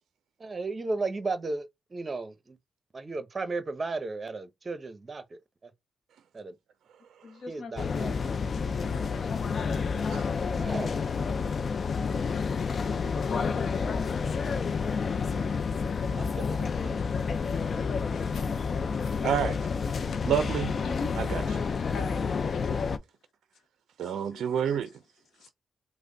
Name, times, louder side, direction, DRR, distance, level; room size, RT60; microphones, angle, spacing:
voice 1, 0.4-2.6 2.9-5.4 6.3-6.5 7.5-8.1 10.6-11.0 16.1-16.9, right 3 dB, 40° right, 0.8 m, -35 dB
voice 2, 7.2-7.7 8.8-9.8 13.3-13.9 17.7-18.4 20.1-20.2 20.8-21.2 21.9-22.2 22.5-22.8 24.0-24.8 25.4-25.5, left 4 dB, 75° left, 0.9 m, -41 dB
sound 1, 7.8-23.0, left 5 dB, 55° left, 0.4 m, -29 dB
voice 3, 19.2-19.6 20.2-20.8 21.2-21.6 24.0-24.9, right 9 dB, 85° right, 0.4 m, -29 dB
3.3 x 2.1 x 3.8 m
cardioid pair, 65°, 0 cm